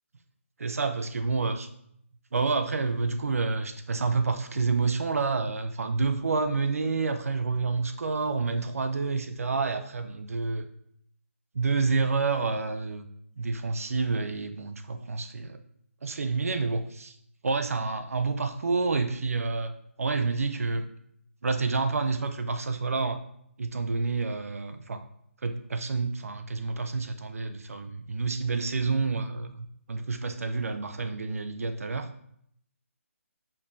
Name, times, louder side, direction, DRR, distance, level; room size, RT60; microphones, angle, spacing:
voice 1, 0.6-1.7 2.3-10.7 11.5-13.1 13.4-15.6 16.0-17.2 17.4-20.9 21.4-23.2 23.6-25.0 25.4-32.1, right 4 dB, 85° right, 8 dB, 0.6 m, -29 dB
6.8 x 5.4 x 2.7 m, 0.70 s
hypercardioid pair, 170°, 8 cm